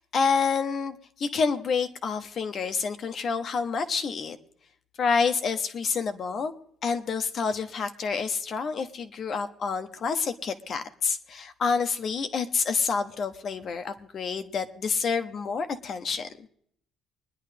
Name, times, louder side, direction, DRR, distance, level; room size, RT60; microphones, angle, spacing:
voice 1, 0.0-4.4 5.0-6.5 6.8-16.3, left 5 dB, 40° left, 8 dB, 0.9 m, -28 dB
24.5 x 10.5 x 3.4 m, 0.67 s
cardioid pair, 150°, 0 cm